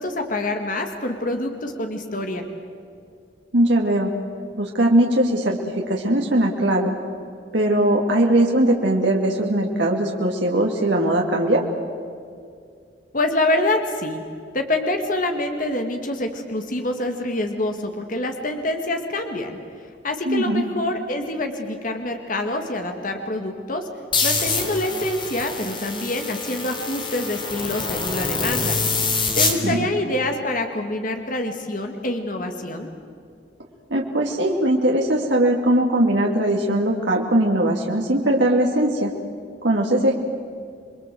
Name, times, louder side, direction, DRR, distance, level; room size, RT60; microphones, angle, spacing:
voice 1, 0.0-2.4 13.1-14.2 14.5-19.6 20.0-23.9 24.2-28.8 29.4-32.9, left 1 dB, 45° left, 5 dB, 2.0 m, -26 dB
voice 2, 3.5-4.1 4.5-6.9 7.5-11.6 20.3-20.6 29.6-29.9 33.9-39.1 39.6-40.1, right 1 dB, 75° right, -1 dB, 2.5 m, -20 dB
sound 1, 24.1-29.6, left 4 dB, 25° left, 3.5 m, -25 dB
28.5 x 22.5 x 7.8 m, 2.4 s
head